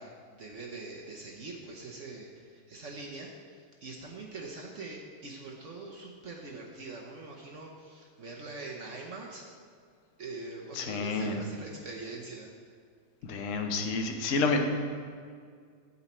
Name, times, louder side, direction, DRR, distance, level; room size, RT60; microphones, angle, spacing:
voice 1, 0.0-9.5 10.2-12.5, right 3 dB, 55° right, -1 dB, 0.8 m, -43 dB
voice 2, 10.7-11.4 13.2-14.7, left 3 dB, 55° left, 4 dB, 0.8 m, -29 dB
8.5 x 8.1 x 4.4 m, 2.1 s
omnidirectional pair, 2.3 m